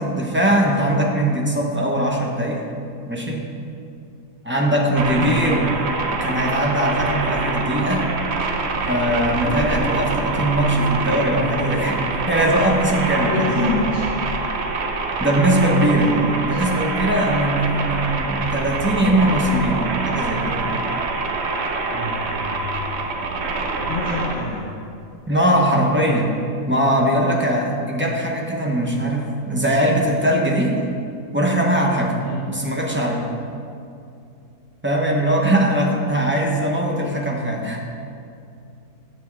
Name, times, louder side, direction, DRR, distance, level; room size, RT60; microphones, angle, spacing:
voice 1, 0.0-2.7 3.1-3.5 4.4-5.9 6.1-8.1 8.9-13.9 15.2-20.7 25.3-26.4 26.7-30.8 31.3-32.2 32.5-33.3 34.8-37.9, right 1 dB, 15° right, -1 dB, 0.4 m, -20 dB
sound 1, 5.0-24.4, right 3 dB, 60° right, 0.7 m, -25 dB
voice 2, 13.2-14.1 15.7-16.6 21.9-22.9 23.8-24.7 32.2-32.4, left 2 dB, 50° left, -4 dB, 1.4 m, -27 dB
9.3 x 4.3 x 7.1 m, 2.5 s
omnidirectional pair, 1.7 m